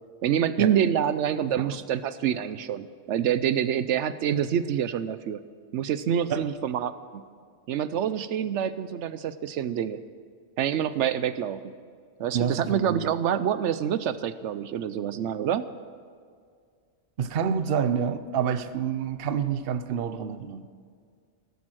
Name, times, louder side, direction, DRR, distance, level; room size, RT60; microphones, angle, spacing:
voice 1, 0.2-5.4 5.7-7.2 7.7-10.0 10.6-11.7 12.2-15.6, right 9 dB, 85° right, 13 dB, 0.9 m, -27 dB
voice 2, 12.3-13.0 17.2-20.6, right 7 dB, 60° right, 11 dB, 0.9 m, -28 dB
16.5 x 14.0 x 6.3 m, 2.1 s
omnidirectional pair, 1.2 m